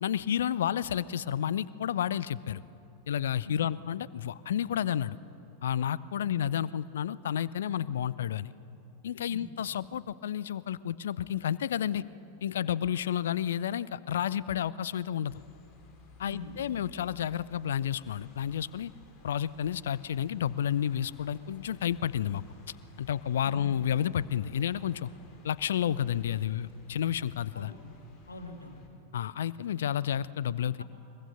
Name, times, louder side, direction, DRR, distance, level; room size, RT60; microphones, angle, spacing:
voice 1, 0.0-2.6 3.1-5.2 5.6-8.5 9.0-12.0 12.4-15.3 16.2-18.9 19.2-22.4 23.0-25.1 25.4-27.7 29.1-30.8, left 10 dB, 60° left, 20 dB, 0.5 m, -31 dB
sound 1, 15.2-28.9, left 2 dB, 30° left, 3.6 m, -57 dB
voice 2, 16.2-16.6 23.4-23.7 27.5-27.8 28.3-28.9 30.8-30.9, left 3 dB, 80° left, 4 dB, 2.2 m, -42 dB
22.0 x 21.5 x 6.6 m, 2.9 s
figure-of-eight pair, 90°, 0 cm